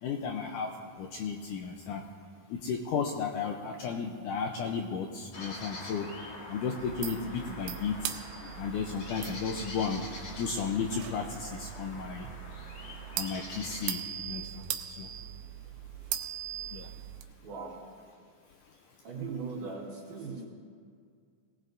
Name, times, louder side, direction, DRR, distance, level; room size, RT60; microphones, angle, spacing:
voice 1, 0.0-2.0 2.5-6.1 6.5-8.1 8.6-10.0 10.4-12.3 13.2-14.0 14.3-14.6 15.0-15.1 16.7-16.9, left 6 dB, 80° left, 3 dB, 1.8 m, -34 dB
sound 1, 5.3-13.9, left 2 dB, 50° left, 2.4 m, -45 dB
sound 2, 6.8-17.2, right 11 dB, 75° right, 2.2 m, -40 dB
voice 2, 17.4-17.8 19.0-20.5, right 4 dB, 60° right, -9 dB, 3.7 m, -39 dB
19.0 x 18.5 x 2.6 m, 2.2 s
omnidirectional pair, 4.4 m